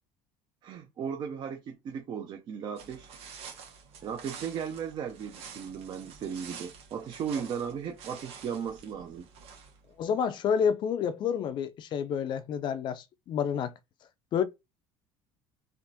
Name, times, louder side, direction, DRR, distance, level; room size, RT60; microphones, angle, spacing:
voice 1, 0.6-3.1 4.0-9.3, right 7 dB, 40° right, 0.5 m, -36 dB
sound 1, 2.8-9.9, right 6 dB, 60° right, 1.2 m, -48 dB
voice 2, 10.0-13.7 14.3-14.4, left 7 dB, 45° left, 0.4 m, -29 dB
3.4 x 2.5 x 2.7 m
cardioid pair, 130°, 12 cm